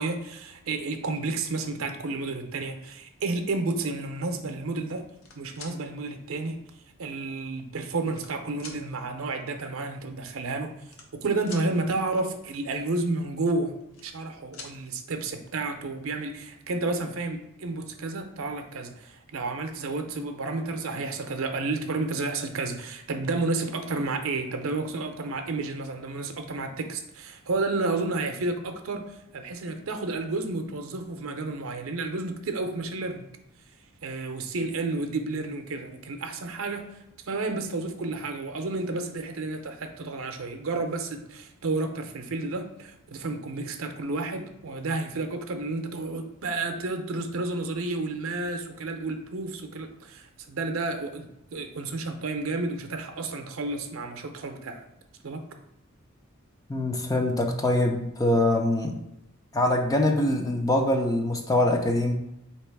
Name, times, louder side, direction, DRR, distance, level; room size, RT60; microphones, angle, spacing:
voice 1, 0.0-5.1 5.4-6.6 7.0-10.7 11.2-13.7 14.0-33.3 34.0-36.9 37.3-54.8 55.2-55.4, right 3 dB, 70° right, 6 dB, 0.6 m, -31 dB
sound 1, 5.0-5.8 6.7-6.8 7.7-8.3 8.6-8.8 10.0-10.1 10.2-10.4 10.8-11.7 13.6-14.3 14.5-14.8 16.2-16.3 16.6-17.0, left 4 dB, 85° left, 0.7 m, -45 dB
voice 2, 56.7-59.0 59.5-62.1, left 1 dB, 15° left, 3 dB, 0.4 m, -24 dB
3.9 x 2.9 x 4.6 m, 0.86 s
head